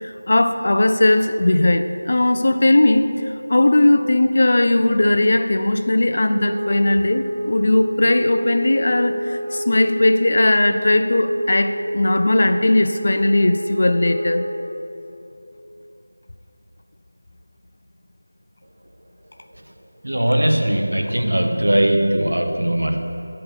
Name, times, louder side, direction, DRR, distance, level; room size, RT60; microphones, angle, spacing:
voice 1, 0.0-3.1 3.5-14.4, left 1 dB, 50° left, 9 dB, 0.4 m, -18 dB
sound 1, 6.4-14.7, right 1 dB, 45° right, 1.2 m, -28 dB
voice 2, 20.0-23.3, right 1 dB, 80° right, 3 dB, 1.1 m, -20 dB
6.6 x 5.6 x 7.0 m, 2.8 s
figure-of-eight pair, 170°, 0 cm